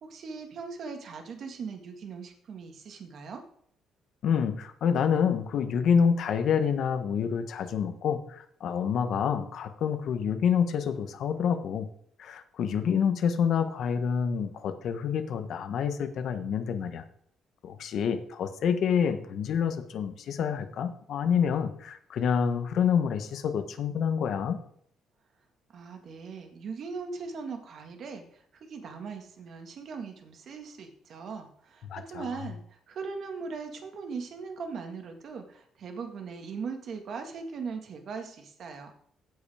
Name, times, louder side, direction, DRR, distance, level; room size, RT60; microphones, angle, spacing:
voice 1, 0.0-3.4 25.7-38.9, right 5 dB, 50° right, 5 dB, 1.8 m, -39 dB
voice 2, 4.2-11.9 12.2-17.0 17.6-24.6 31.9-32.3, left 7 dB, 55° left, 8 dB, 1.2 m, -27 dB
16.0 x 5.5 x 5.0 m, 0.64 s
cardioid pair, 160°, 0 cm